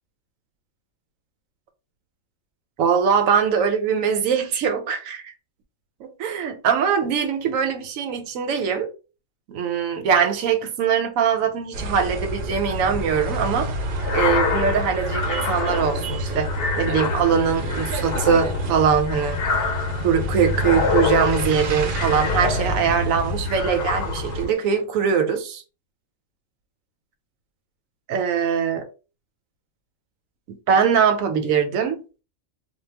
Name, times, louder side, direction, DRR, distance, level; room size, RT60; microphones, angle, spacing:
voice 1, 2.8-5.3 6.0-8.9 9.5-13.7 14.1-19.4 20.0-25.6 28.1-28.9 30.5-32.0, right 7 dB, 90° right, 1.0 m, -22 dB
sound 1, 11.7-24.5, equal, 60° right, 0.6 m, -28 dB
sound 2, 14.0-23.1 23.5-24.5, left 5 dB, 60° left, 0.7 m, -27 dB
2.3 x 2.1 x 3.2 m
omnidirectional pair, 1.4 m